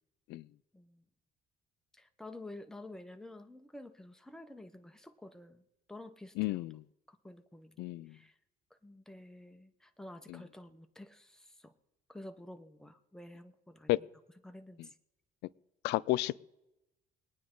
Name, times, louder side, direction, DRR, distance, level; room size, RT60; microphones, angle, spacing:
voice 1, 0.7-1.0 1.9-5.6 5.9-6.6 7.1-8.4 8.7-11.7 12.1-14.1 14.4-14.9, left 1 dB, 5° left, 1.0 m, -50 dB
voice 2, 6.4-6.8 7.8-8.2 10.3-10.4 13.9-14.0 15.8-16.4, left 18 dB, 85° left, 0.4 m, -32 dB
22.0 x 9.3 x 3.8 m
cardioid pair, 110°, 17 cm